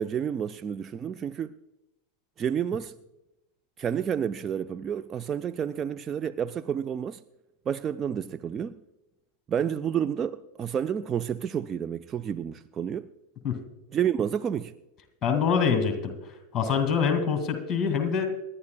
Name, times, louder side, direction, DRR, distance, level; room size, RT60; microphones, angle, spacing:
voice 1, 0.0-1.6 2.4-3.0 3.8-7.2 7.7-8.8 9.5-13.1 13.9-14.7, right 8 dB, 25° right, 0.3 m, -30 dB
voice 2, 15.2-16.1 16.5-18.3, left 6 dB, 20° left, 2.1 m, -25 dB
26.5 x 11.0 x 2.2 m
figure-of-eight pair, 90°, 0 cm